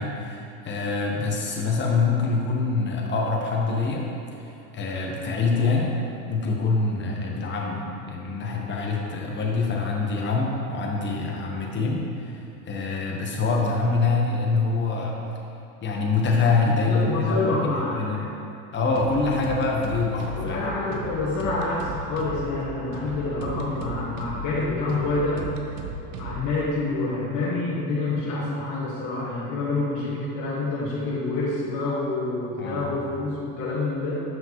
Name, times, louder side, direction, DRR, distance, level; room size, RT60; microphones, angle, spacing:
voice 1, 0.0-4.1 4.4-6.0 6.3-12.4 12.6-15.2 15.8-17.5 18.0-18.2 18.7-20.6 32.6-32.9, left 4 dB, 25° left, -1 dB, 1.1 m, -25 dB
voice 2, 16.6-18.2 20.4-25.5 26.2-34.2, left 3 dB, 45° left, -8 dB, 1.4 m, -27 dB
sound 1, 18.9-26.6, right 2 dB, 70° right, 0.9 m, -36 dB
7.6 x 5.6 x 3.0 m, 2.8 s
supercardioid pair, 115°, 40 cm